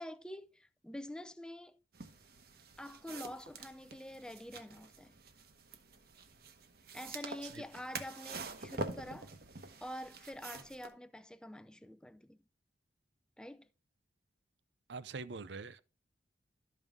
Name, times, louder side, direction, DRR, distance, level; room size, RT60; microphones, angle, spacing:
voice 1, 0.0-1.8 2.8-5.1 6.9-9.3 9.8-12.4 13.4-13.7, left 1 dB, 5° left, 0.4 m, -47 dB
sound 1, 1.9-10.9, right 3 dB, 60° right, 1.0 m, -47 dB
voice 2, 14.9-15.8, right 4 dB, 80° right, 0.6 m, -44 dB
12.5 x 5.5 x 3.7 m
head